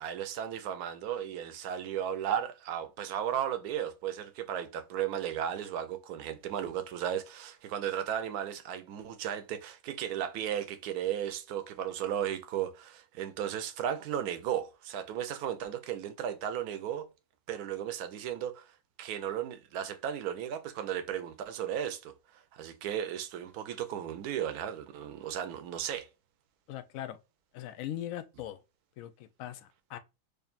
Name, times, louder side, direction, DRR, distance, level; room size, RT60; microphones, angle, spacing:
voice 1, 0.0-17.1 17.5-18.6 19.0-22.1 22.5-26.1, right 10 dB, 65° right, 1.1 m, -35 dB
voice 2, 26.7-27.2 27.5-28.6 29.0-30.0, left 12 dB, 75° left, 0.8 m, -40 dB
5.0 x 2.6 x 2.4 m
omnidirectional pair, 1.9 m